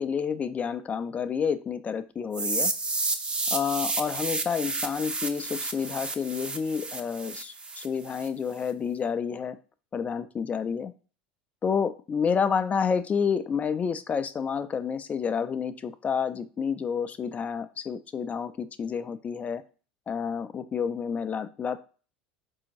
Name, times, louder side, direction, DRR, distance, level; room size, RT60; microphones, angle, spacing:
voice 1, 0.0-2.7 3.5-9.6 9.9-10.9 11.6-19.6 20.1-21.8, left 6 dB, 30° left, 12 dB, 0.3 m, -29 dB
sound 1, 2.3-8.3, right 3 dB, 20° right, 0.5 m, -31 dB
4.1 x 2.7 x 2.8 m, 0.37 s
hypercardioid pair, 80°, 5 cm